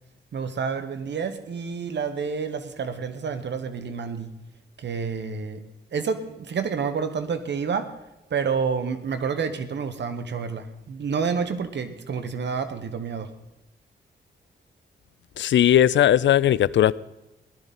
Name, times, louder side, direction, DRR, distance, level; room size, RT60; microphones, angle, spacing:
voice 1, 0.3-4.3 4.8-5.6 5.9-7.9 8.3-13.3, right 6 dB, 70° right, 1.3 m, -29 dB
voice 2, 15.4-16.9, left 11 dB, 75° left, 0.4 m, -18 dB
17.5 x 12.0 x 4.2 m
cardioid pair, 80°, 19 cm